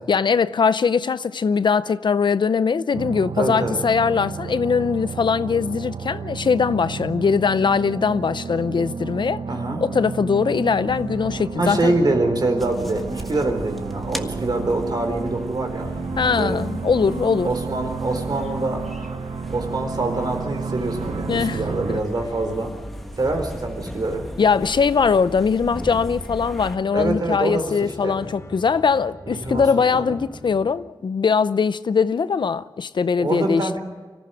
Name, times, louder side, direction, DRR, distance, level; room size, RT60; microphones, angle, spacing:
voice 1, 0.1-9.4 9.8-11.9 16.2-17.5 21.3-21.6 21.9-22.0 24.4-33.7, left 5 dB, 65° left, 0.6 m, -21 dB
sound 1, 2.9-22.0, right 6 dB, 75° right, 0.7 m, -32 dB
voice 2, 3.4-3.8 9.5-9.8 11.6-15.9 16.2-16.6 17.4-19.2 19.5-22.7 23.2-24.2 26.9-28.2 29.3-29.6 29.9-30.1 33.2-33.8, right 2 dB, 55° right, 4.1 m, -25 dB
sound 2, 10.9-30.7, equal, 35° left, 2.9 m, -40 dB
sound 3, 12.6-26.8, equal, ahead, 1.5 m, -37 dB
25.0 x 14.5 x 9.2 m
wide cardioid pair, 85°, 8 cm